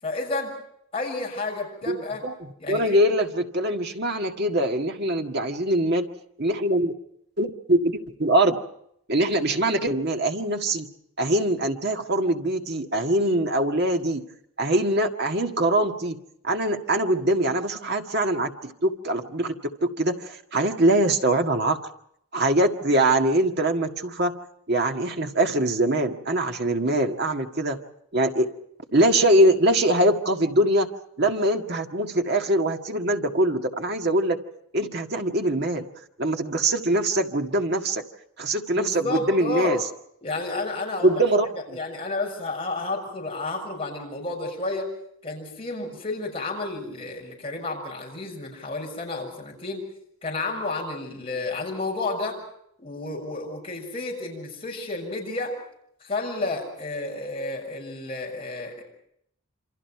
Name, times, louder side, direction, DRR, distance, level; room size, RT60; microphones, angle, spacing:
voice 1, 0.0-0.5 0.9-2.2 2.6-3.0 38.7-39.8 40.2-41.2 41.7-44.9 45.2-49.8 50.2-52.4 52.8-55.6 56.0-58.8, left 3 dB, 25° left, -1 dB, 6.7 m, -31 dB
voice 2, 2.2-6.1 6.4-6.9 7.4-8.6 9.1-10.9 11.2-14.2 14.6-21.8 22.3-24.4 24.7-27.8 28.1-28.5 28.9-30.9 31.2-34.4 34.7-35.9 36.2-38.0 38.4-39.8 41.0-41.5, right 1 dB, 50° right, 4 dB, 1.8 m, -23 dB
28.0 x 26.0 x 4.6 m, 0.71 s
head